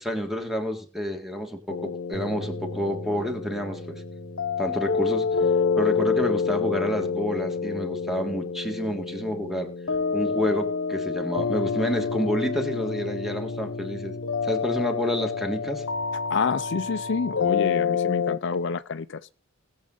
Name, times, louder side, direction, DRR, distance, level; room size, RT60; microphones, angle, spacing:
voice 1, 0.0-4.0 4.6-5.3 5.8-9.7 10.1-14.1 14.4-15.9, equal, ahead, 1.8 m, -29 dB
sound 1, 1.7-18.4, left 5 dB, 75° left, 1.0 m, -28 dB
sound 2, 2.1-8.4, right 2 dB, 20° right, 2.8 m, -44 dB
voice 2, 16.3-19.2, left 5 dB, 60° left, 0.5 m, -28 dB
19.0 x 7.4 x 3.9 m
head